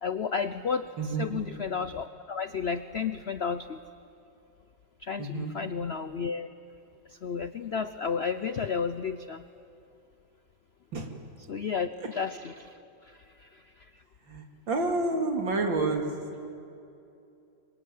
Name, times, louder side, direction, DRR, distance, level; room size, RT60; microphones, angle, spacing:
voice 1, 0.0-3.8 5.0-6.5 7.1-9.4 11.5-13.9, left 6 dB, 70° left, 12 dB, 0.6 m, -32 dB
voice 2, 1.0-1.3 5.2-5.5 10.9-11.1 14.3-16.1, right 3 dB, 80° right, 3 dB, 3.3 m, -29 dB
26.5 x 23.0 x 9.4 m, 2.7 s
omnidirectional pair, 2.0 m